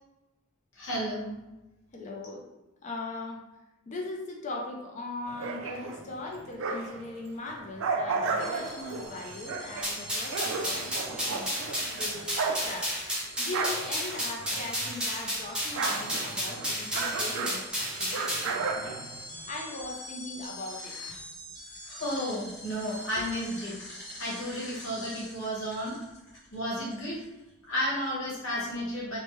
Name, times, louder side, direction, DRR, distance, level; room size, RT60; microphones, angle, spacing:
voice 1, 0.7-1.4 21.9-23.8 24.2-26.0 26.5-27.2 27.7-29.2, equal, 80° left, -7 dB, 1.2 m, -32 dB
voice 2, 1.9-2.5 2.8-3.4 3.9-12.3 12.6-12.9 13.4-19.0 19.5-21.1 23.2-23.3, left 2 dB, 35° left, 1 dB, 0.4 m, -40 dB
sound 1, 5.3-7.1 7.5-15.1 15.3-19.6, right 4 dB, 80° right, 0.4 m, -34 dB
sound 2, 8.4-27.5, left 1 dB, 15° left, 1.4 m, -45 dB
sound 3, 9.8-18.5, equal, 5° right, 0.6 m, -32 dB
3.0 x 2.1 x 3.0 m, 1.0 s
head